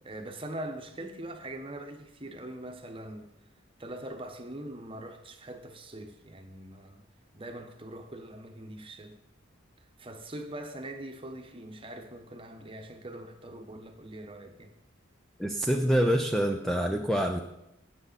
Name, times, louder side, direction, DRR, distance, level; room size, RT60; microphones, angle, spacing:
voice 1, 0.0-3.3 3.8-7.0 7.3-9.2 10.0-14.7, right 1 dB, 25° right, 1.1 m, -42 dB
voice 2, 15.4-17.4, equal, ahead, 0.5 m, -26 dB
17.0 x 6.8 x 4.1 m
head